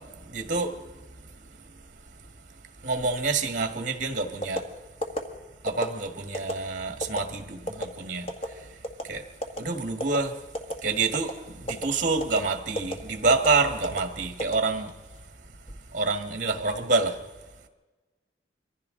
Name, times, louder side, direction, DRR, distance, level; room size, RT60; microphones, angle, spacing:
voice 1, 0.3-0.7 2.8-4.6 5.6-8.3 9.1-9.2 9.6-10.3 10.8-11.3 11.6-14.9 15.9-17.2, right 3 dB, 50° right, 1.6 m, -27 dB
sound 1, 4.4-4.6 5.0-5.2 5.7-5.9 6.3-6.5 7.0-7.2 7.7-7.9 8.3-8.5 8.8-9.1 9.4-9.6 10.0-10.2 10.5-10.8 11.1-11.3 11.7-11.9 12.2-12.4 12.8-12.9 13.3-13.5 13.8-14.0 14.4-15.0 15.5-15.8, equal, 35° left, 1.7 m, -30 dB
24.0 x 15.0 x 3.8 m
head